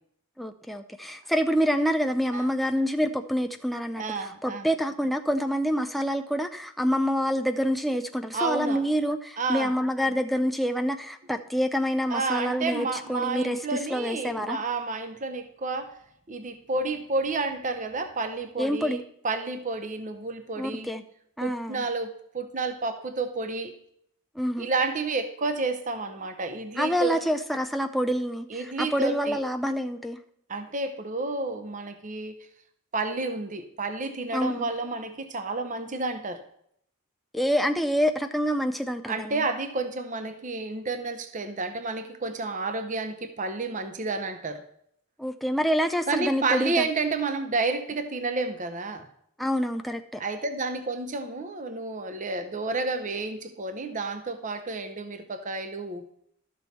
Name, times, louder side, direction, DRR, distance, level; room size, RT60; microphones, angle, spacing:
voice 1, 0.4-14.6 18.6-19.0 20.6-21.0 21.4-21.9 24.4-24.7 26.8-30.2 34.3-34.7 37.3-39.4 45.2-46.9 49.4-50.2, equal, ahead, 5 dB, 0.4 m, -27 dB
voice 2, 4.0-4.7 8.3-8.8 9.4-9.7 12.1-16.0 16.3-20.9 21.4-23.7 24.6-27.2 28.5-29.4 30.5-32.3 32.9-36.4 39.1-44.6 46.1-49.1 50.2-56.1, right 3 dB, 35° right, 8 dB, 0.8 m, -30 dB
12.5 x 6.3 x 4.2 m, 0.71 s
head